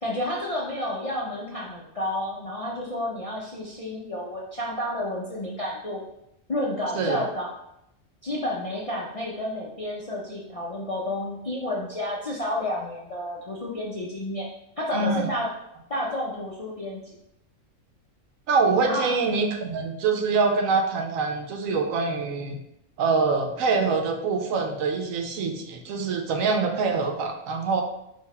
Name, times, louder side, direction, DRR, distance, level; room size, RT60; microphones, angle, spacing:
voice 1, 0.0-6.0 6.5-7.5 8.2-14.5 14.8-15.5 15.9-17.2 18.8-19.1, left 1 dB, 50° left, -5 dB, 0.4 m, -30 dB
voice 2, 14.9-15.3 18.5-22.6 23.0-27.8, right 4 dB, 80° right, 4 dB, 1.0 m, -25 dB
3.9 x 2.7 x 4.1 m, 0.83 s
omnidirectional pair, 1.4 m